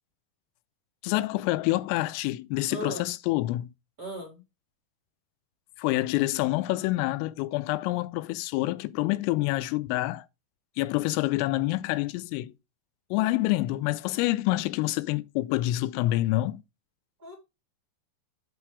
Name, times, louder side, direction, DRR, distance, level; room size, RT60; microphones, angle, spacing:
voice 1, 1.0-3.7 5.8-10.3 10.8-12.5 13.1-16.6, left 18 dB, 85° left, 3.2 m, -27 dB
voice 2, 2.7-3.1 4.0-4.4 17.2-17.3, equal, 20° right, 3.2 m, -36 dB
11.0 x 4.7 x 3.2 m
omnidirectional pair, 5.9 m